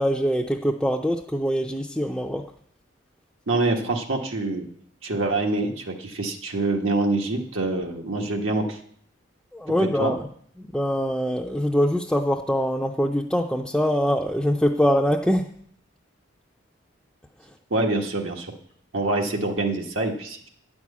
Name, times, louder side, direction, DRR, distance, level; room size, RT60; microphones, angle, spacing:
voice 1, 0.0-2.4 9.5-10.2 10.7-15.5, equal, 5° left, -1 dB, 0.4 m, -23 dB
voice 2, 3.5-4.7 5.0-8.8 9.8-10.1 17.7-18.5 18.9-20.5, right 2 dB, 80° right, 2 dB, 1.4 m, -25 dB
9.5 x 6.1 x 8.3 m, 0.63 s
head